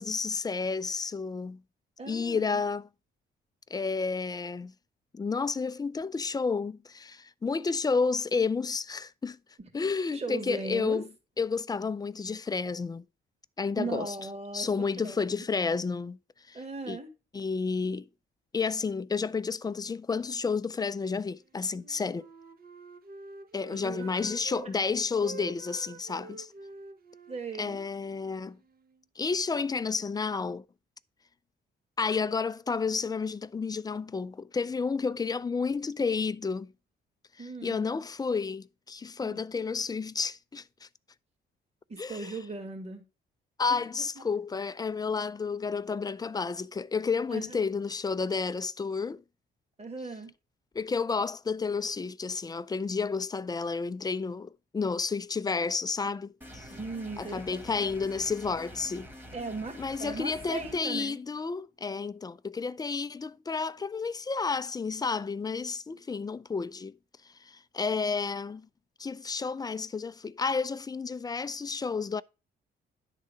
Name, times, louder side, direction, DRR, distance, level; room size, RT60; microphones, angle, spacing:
voice 1, 0.0-1.6 2.1-2.9 3.7-4.7 5.1-9.4 9.7-11.1 11.4-13.0 13.6-14.1 14.5-16.2 16.5-16.6 16.9-17.0 17.3-18.1 18.5-22.3 23.5-26.5 27.6-28.6 29.2-30.6 32.0-36.7 37.4-40.9 42.0-42.3 43.6-49.2 50.7-56.7 57.2-59.1 59.8-66.9 67.4-68.7 69.0-72.2, left 4 dB, 20° left, 0.4 m, -31 dB
voice 2, 2.0-2.6 10.1-11.0 13.8-15.2 16.5-17.1 23.7-24.1 27.3-27.8 37.4-37.9 39.2-39.4 41.9-43.0 43.7-43.8 44.2-44.3 47.3-47.6 49.8-50.3 56.7-57.6 59.3-61.2, right 3 dB, 30° right, 2.1 m, -38 dB
Wind instrument woodwind instrument, 21.7-24.7 25.2-29.0, right 5 dB, 50° right, 0.9 m, -48 dB
sound 1, 56.4-60.8, equal, 10° right, 1.5 m, -47 dB
11.0 x 3.8 x 4.9 m
cardioid pair, 90°, 20 cm